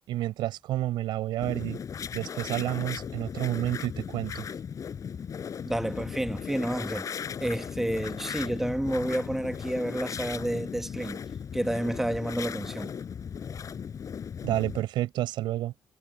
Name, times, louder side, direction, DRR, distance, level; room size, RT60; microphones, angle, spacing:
voice 1, 0.1-1.8 2.1-4.4 14.4-15.7, right 14 dB, 85° right, 6.7 m, -30 dB
sound 1, 1.4-14.8, left 7 dB, 45° left, 4.4 m, -37 dB
voice 2, 5.7-7.1 7.4-11.2 11.5-12.9, right 1 dB, 5° right, 1.3 m, -30 dB
cardioid pair, 100°, 8 cm